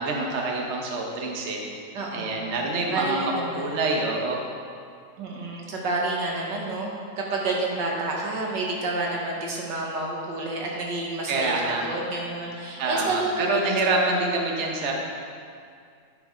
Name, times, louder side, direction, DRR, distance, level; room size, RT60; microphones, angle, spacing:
voice 1, 0.0-1.6 2.1-4.4 11.3-11.8 12.8-14.9, right 2 dB, 45° right, 0 dB, 1.3 m, -26 dB
voice 2, 1.9-2.6 2.9-3.9 5.2-6.9 7.2-13.9, right 2 dB, 90° right, -2 dB, 2.0 m, -29 dB
10.5 x 5.7 x 5.0 m, 2.3 s
omnidirectional pair, 1.9 m